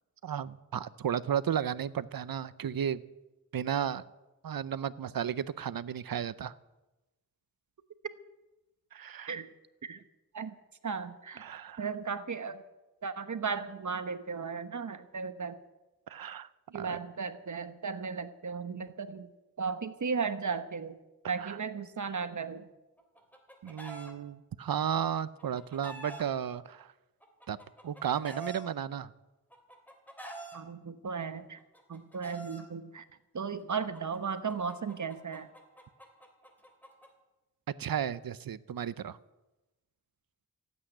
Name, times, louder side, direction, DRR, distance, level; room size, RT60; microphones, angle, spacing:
voice 1, 0.2-3.0 3.5-4.0 4.4-6.5 8.9-9.3 11.4-11.8 16.1-16.5 16.7-17.0 21.4-21.6 23.6-26.9 27.5-27.6 27.8-29.1 37.8-39.2, right 9 dB, 75° right, 16 dB, 0.7 m, -34 dB
voice 2, 10.8-11.5 11.8-12.6 13.0-15.6 16.7-19.3 19.6-21.0 21.3-22.7 30.5-31.6 31.9-33.0 33.3-35.5, right 5 dB, 55° right, 11 dB, 1.0 m, -35 dB
Chicken rooster, 23.0-24.1 25.2-26.2 27.2-28.6 29.5-30.6 31.6-32.6 33.7-37.1, right 2 dB, 5° left, 3.1 m, -46 dB
15.5 x 8.3 x 10.0 m, 1.0 s
wide cardioid pair, 75°, 35 cm